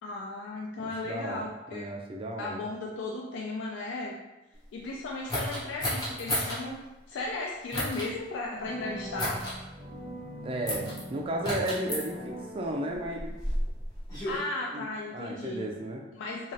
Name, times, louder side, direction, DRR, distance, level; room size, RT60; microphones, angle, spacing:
voice 1, 0.0-1.9 2.4-4.2 4.7-6.8 7.1-9.4 14.2-15.7 16.1-16.5, left 2 dB, 75° left, -2 dB, 0.3 m, -35 dB
voice 2, 0.8-1.5 1.7-2.6 10.4-13.3 14.7-14.9 15.1-16.0, right 1 dB, 30° right, 1 dB, 0.3 m, -34 dB
sound 1, 5.3-6.6 7.7-8.1 9.2-9.6 10.7-11.0 11.4-12.0 12.9-14.4, equal, 20° left, 0.8 m, -32 dB
sound 2, 8.5-13.5, equal, 15° right, 0.7 m, -42 dB
3.1 x 2.4 x 2.6 m, 1.0 s
head